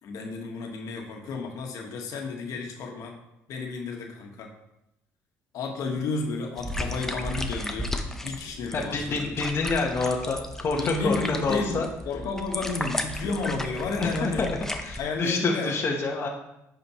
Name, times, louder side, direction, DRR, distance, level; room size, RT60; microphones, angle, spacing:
voice 1, 0.0-3.1 3.5-4.5 5.5-7.9 8.2-9.3 10.7-14.4 15.0-15.7, left 3 dB, 65° left, 2 dB, 1.4 m, -32 dB
sound 1, 6.6-15.0, left 1 dB, 5° left, 0.7 m, -34 dB
voice 2, 8.7-11.9 13.9-16.3, left 4 dB, 40° left, -1 dB, 1.0 m, -27 dB
9.7 x 5.0 x 3.0 m, 0.86 s
cardioid pair, 100°, 6 cm